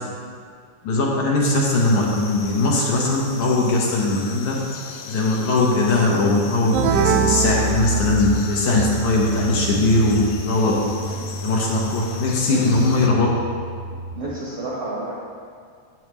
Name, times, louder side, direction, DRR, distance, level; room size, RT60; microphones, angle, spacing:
voice 1, 0.8-4.6 5.1-10.7 11.4-13.3, left 2 dB, 65° left, -3 dB, 2.4 m, -20 dB
sound 1, 1.8-13.1, left 5 dB, 85° left, 2.4 m, -38 dB
sound 2, 6.7-14.2, right 2 dB, 50° left, 1.2 m, -29 dB
sound 3, 6.7-8.6, right 8 dB, 80° right, 2.2 m, -23 dB
voice 2, 12.5-13.1 14.1-15.1, right 2 dB, 55° right, -6 dB, 1.8 m, -31 dB
12.5 x 8.1 x 3.1 m, 2.1 s
omnidirectional pair, 4.0 m